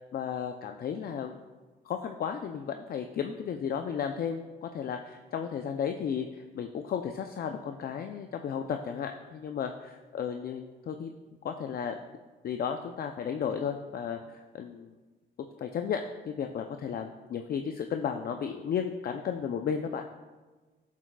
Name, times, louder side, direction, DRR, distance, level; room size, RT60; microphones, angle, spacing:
voice 1, 0.1-1.4 1.9-11.1 11.4-12.0 12.4-14.9 15.6-20.0, left 7 dB, 50° left, 6 dB, 0.5 m, -34 dB
9.8 x 7.3 x 2.3 m, 1.3 s
cardioid pair, 90°, 20 cm